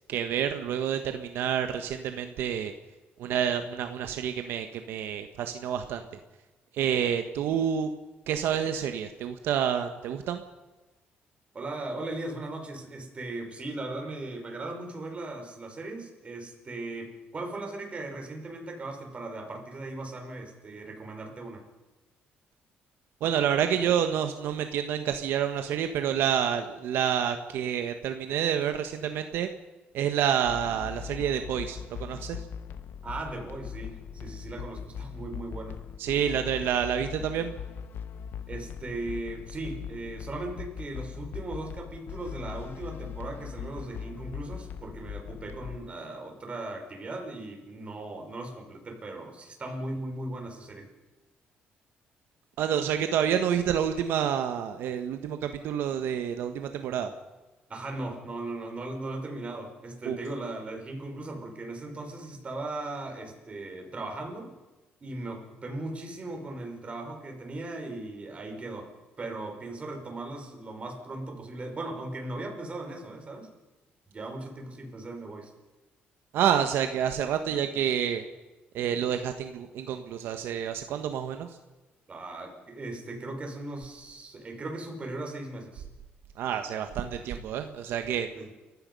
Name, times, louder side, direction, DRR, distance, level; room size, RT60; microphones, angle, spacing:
voice 1, 0.1-2.7 3.2-6.0 6.7-7.9 8.3-10.4 23.2-29.5 29.9-32.4 36.0-37.5 52.6-57.1 60.0-60.2 76.3-78.2 78.7-81.5 86.4-88.3, right 9 dB, 80° right, 7 dB, 1.4 m, -28 dB
voice 2, 11.5-21.7 33.0-35.8 38.5-50.9 57.7-64.5 65.0-73.5 74.1-75.5 82.1-85.8 88.4-88.5, right 2 dB, 30° right, 3 dB, 5.6 m, -38 dB
sound 1, 30.4-45.8, left 8 dB, 65° left, 1.4 m, -40 dB
29.0 x 16.0 x 5.5 m, 1.1 s
cardioid pair, 110°, 4 cm